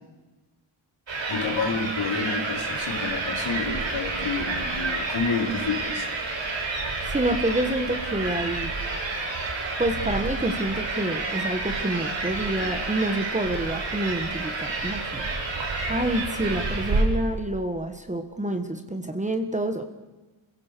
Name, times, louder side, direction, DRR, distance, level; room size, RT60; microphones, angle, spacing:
sound 1, 1.1-17.0, right 3 dB, 60° right, 6.4 m, -29 dB
voice 1, 1.3-6.1, left 4 dB, 65° left, 1 dB, 4.6 m, -29 dB
voice 2, 7.0-8.7 9.8-15.2 15.9-19.8, right 1 dB, 15° right, 7 dB, 1.5 m, -28 dB
27.0 x 16.5 x 6.8 m, 1.2 s
wide cardioid pair, 165°, 49 cm